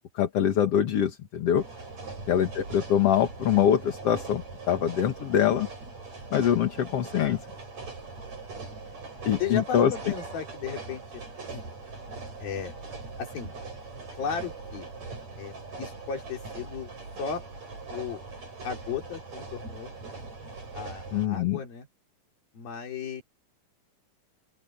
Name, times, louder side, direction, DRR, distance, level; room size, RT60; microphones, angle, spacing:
voice 1, 0.1-1.6 2.3-5.7 6.3-7.4 9.2-9.9 21.1-21.6, left 9 dB, 50° left, 2.3 m, -24 dB
sound 1, 1.6-21.3, right 3 dB, 50° right, 8.9 m, -41 dB
voice 2, 8.5-9.0 9.4-11.2 11.5-11.6 12.4-12.7 13.2-13.5 14.1-14.9 15.4-16.9 17.2-17.4 17.9-18.2 18.6-19.9 20.7-21.9 22.5-23.2, left 7 dB, 85° left, 5.6 m, -35 dB
open air
omnidirectional pair, 4.1 m